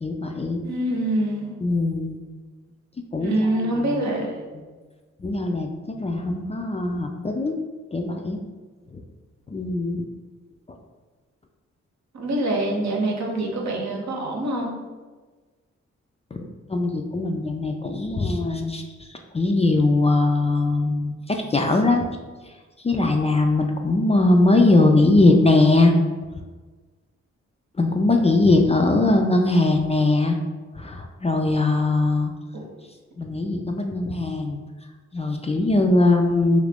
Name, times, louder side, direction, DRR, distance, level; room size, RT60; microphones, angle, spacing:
voice 1, 0.0-0.6 1.6-2.2 3.1-3.8 5.2-5.7 6.0-7.6 7.9-8.4 8.9-9.0 9.5-10.0 16.3-19.1 19.3-22.1 22.8-25.9 27.8-30.4 30.8-32.3 33.2-34.6 35.1-36.6, left 2 dB, 20° left, 3 dB, 0.3 m, -20 dB
voice 2, 0.6-1.6 3.2-4.4 12.1-14.8 32.5-32.7, right 1 dB, 65° right, 0 dB, 0.8 m, -25 dB
2.8 x 2.5 x 3.4 m, 1.3 s
cardioid pair, 50°, 30 cm